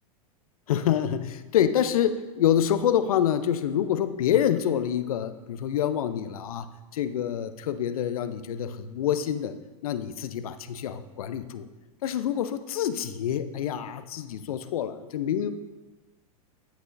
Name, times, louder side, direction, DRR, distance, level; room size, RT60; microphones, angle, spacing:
voice 1, 0.7-9.6 9.8-11.7 12.0-15.5, left 10 dB, 70° left, 11 dB, 0.7 m, -27 dB
11.5 x 8.1 x 2.6 m, 1.1 s
hypercardioid pair, 105°, 19 cm